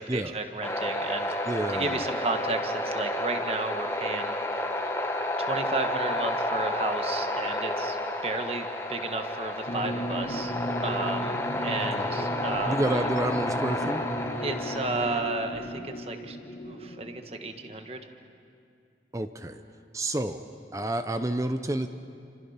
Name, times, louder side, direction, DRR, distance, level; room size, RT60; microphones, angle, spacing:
voice 1, 0.1-4.3 5.4-8.0 8.2-10.5 10.8-12.8 14.4-16.4 16.6-18.0, right 3 dB, 35° right, 6 dB, 1.5 m, -33 dB
sound 1, 0.6-15.2, left 1 dB, 15° left, 1.4 m, -31 dB
voice 2, 1.5-2.0 12.0-12.1 12.6-14.0 19.1-19.6 19.9-20.4 20.7-21.9, right 1 dB, 20° right, 9 dB, 0.7 m, -29 dB
sound 2, 9.7-17.9, equal, 45° left, 1.5 m, -36 dB
30.0 x 26.5 x 5.8 m, 2.5 s
head